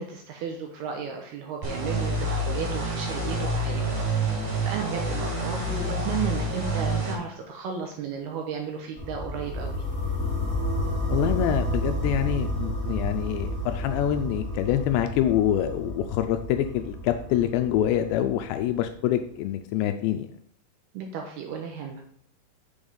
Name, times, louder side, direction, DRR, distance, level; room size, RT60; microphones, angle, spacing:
voice 1, 0.0-9.8 20.9-22.0, right 6 dB, 75° right, 2 dB, 2.4 m, -34 dB
sound 1, 1.6-7.1, right 1 dB, 50° right, 4.5 m, -28 dB
sound 2, 9.0-18.9, left 1 dB, 5° left, 0.6 m, -31 dB
voice 2, 11.1-20.3, left 11 dB, 85° left, 7 dB, 2.6 m, -26 dB
7.1 x 5.2 x 5.3 m, 0.63 s
omnidirectional pair, 5.3 m